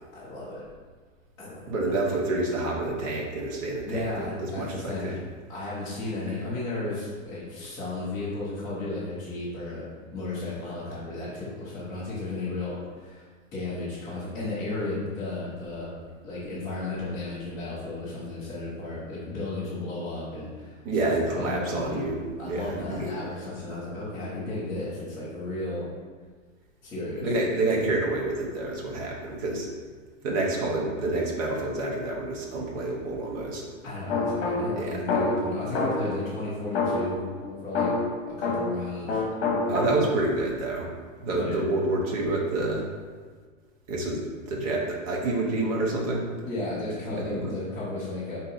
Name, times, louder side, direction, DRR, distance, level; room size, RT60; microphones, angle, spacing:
voice 1, 0.1-0.6 1.4-1.9 3.8-5.2 5.5-13.3 13.5-15.9 16.2-20.8 21.4-22.1 22.4-25.9 26.8-27.3 33.8-37.2 37.6-37.9 38.3-39.2 41.3-41.6 46.5-48.4, left 2 dB, 10° left, -12 dB, 0.5 m, -34 dB
voice 2, 1.7-5.1 20.9-23.1 27.2-29.7 30.2-33.6 34.8-35.0 39.7-40.9 41.2-42.8 43.9-46.3 47.2-47.5, right 2 dB, 30° right, -2 dB, 0.7 m, -28 dB
sound 1, 34.1-36.2 36.7-38.8 39.1-40.3, left 3 dB, 50° left, 1.1 m, -27 dB
4.5 x 2.8 x 3.9 m, 1.5 s
supercardioid pair, 165°, 39 cm